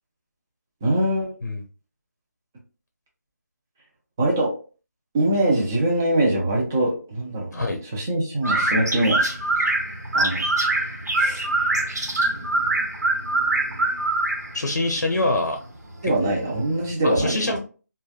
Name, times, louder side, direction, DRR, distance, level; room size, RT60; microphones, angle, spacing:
voice 1, 0.8-1.3 4.2-4.5 5.1-7.6 7.9-9.3 10.1-10.4 11.2-11.8 16.0-17.6, right 1 dB, 10° right, -2 dB, 0.3 m, -23 dB
sound 1, 8.4-16.9, right 2 dB, 70° right, 1.0 m, -24 dB
voice 2, 14.5-15.6 16.2-16.4 17.0-17.6, left 2 dB, 85° left, 3 dB, 0.6 m, -24 dB
3.2 x 2.1 x 2.3 m, 0.37 s
figure-of-eight pair, 165°, 9 cm